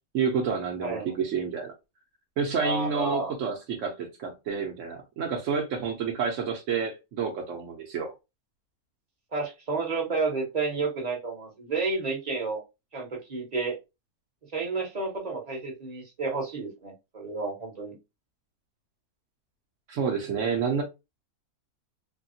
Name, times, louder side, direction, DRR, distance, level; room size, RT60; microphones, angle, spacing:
voice 1, 0.1-1.7 2.4-8.1 19.9-20.8, right 6 dB, 65° right, 0.9 m, -29 dB
voice 2, 2.6-3.3 9.3-12.6 12.9-13.8 14.5-17.9, right 3 dB, 30° right, 0.9 m, -31 dB
3.4 x 2.2 x 2.7 m
omnidirectional pair, 1.6 m